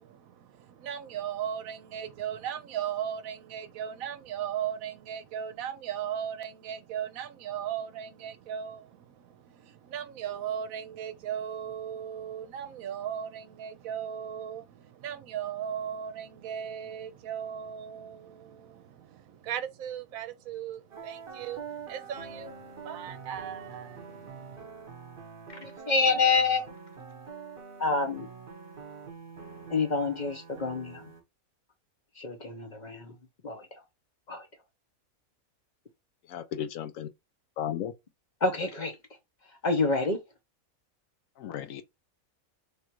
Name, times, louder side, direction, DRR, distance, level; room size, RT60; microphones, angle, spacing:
voice 1, 0.0-24.7, right 9 dB, 80° right, 1.0 m, -37 dB
sound 1, 20.9-31.2, right 5 dB, 40° right, 1.3 m, -45 dB
voice 2, 25.6-26.7 27.8-28.3 29.7-31.1 32.2-33.1 33.4-33.7 34.3-34.4 38.4-39.0 39.6-40.2, left 4 dB, 40° left, 0.7 m, -27 dB
voice 3, 36.3-37.1 37.6-37.9 41.4-41.8, left 10 dB, 75° left, 1.0 m, -34 dB
3.3 x 2.5 x 4.4 m
omnidirectional pair, 1.5 m